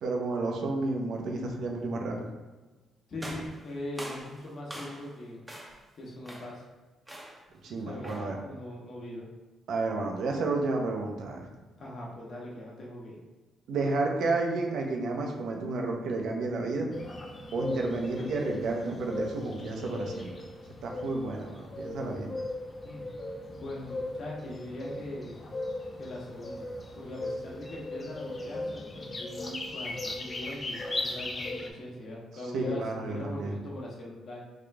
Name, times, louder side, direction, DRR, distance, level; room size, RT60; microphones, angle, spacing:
voice 1, 0.0-2.3 7.6-8.4 9.7-11.5 13.7-16.9 17.5-20.4 20.8-22.3 32.5-33.5, right 3 dB, 75° right, 1 dB, 0.7 m, -31 dB
voice 2, 3.1-5.4 6.0-6.6 7.8-9.3 11.8-13.2 22.8-23.0 23.5-25.4 26.0-26.7 27.0-34.4, left 1 dB, 55° left, -3 dB, 1.0 m, -41 dB
sound 1, 3.2-5.2 5.5-5.9 6.2-6.6 7.1-7.5 8.0-8.4, right 1 dB, 10° right, 0.6 m, -43 dB
sound 2, 16.9-31.7, left 2 dB, 35° left, 0.5 m, -38 dB
3.6 x 2.4 x 3.3 m, 1.2 s
cardioid pair, 90°, 0 cm